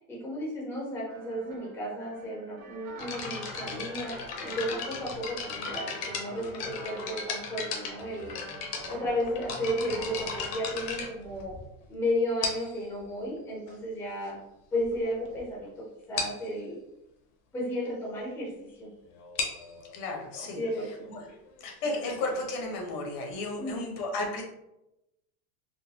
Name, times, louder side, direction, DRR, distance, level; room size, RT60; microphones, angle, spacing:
voice 1, 0.1-4.1 4.4-8.4 8.9-11.5 11.9-14.3 14.7-15.7 16.1-16.8 17.5-18.5 18.8-18.9 20.6-21.0 23.6-23.9, equal, 5° left, -4 dB, 0.6 m, -33 dB
sound 1, 1.1-10.5, right 4 dB, 40° right, 0.4 m, -47 dB
sound 2, 3.0-11.8 12.4-12.8 13.7-13.8 14.4-14.5 14.7-15.0 15.3-15.4 15.6-15.7 16.2-16.5 19.1-22.6, left 5 dB, 50° left, 0.8 m, -37 dB
voice 2, 19.9-20.6 21.1-21.3 21.6-24.4, left 2 dB, 75° left, 1 dB, 1.1 m, -33 dB
3.9 x 2.1 x 2.8 m, 0.88 s
supercardioid pair, 155°, 45 cm